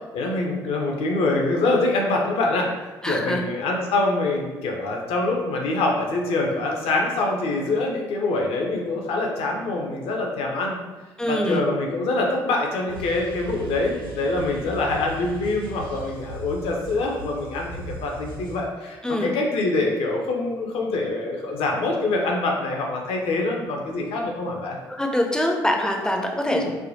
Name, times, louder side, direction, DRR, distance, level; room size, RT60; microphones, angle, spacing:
voice 1, 0.1-10.8 11.3-24.8 26.5-26.7, left 2 dB, 55° left, 0 dB, 0.6 m, -25 dB
voice 2, 3.0-3.4 11.2-11.7 19.0-19.4 24.9-26.6, equal, 5° left, 2 dB, 0.5 m, -24 dB
sound 1, 12.9-18.6, right 2 dB, 90° left, 1.1 m, -38 dB
3.4 x 2.2 x 2.7 m, 1.2 s
figure-of-eight pair, 40°, 11 cm